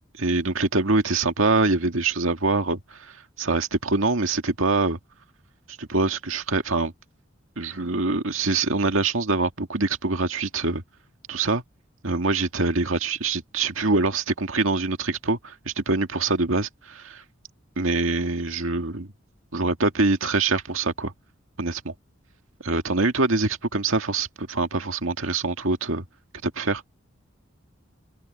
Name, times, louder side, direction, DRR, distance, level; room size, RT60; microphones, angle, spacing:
voice 1, 0.2-5.0 5.8-6.9 7.6-10.8 11.3-11.6 12.0-17.2 17.8-19.1 19.5-21.1 21.6-21.9 22.6-26.0 26.4-26.8, right 3 dB, 85° right, 2.0 m, -24 dB
open air
head